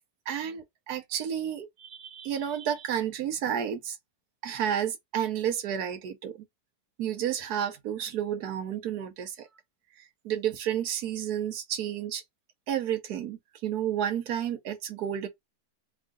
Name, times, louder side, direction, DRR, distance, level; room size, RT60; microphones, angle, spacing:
voice 1, 0.3-4.0 4.4-6.4 7.0-9.5 10.2-12.2 12.7-15.3, right 9 dB, 80° right, 1.4 m, -31 dB
3.6 x 2.4 x 3.7 m
omnidirectional pair, 1.7 m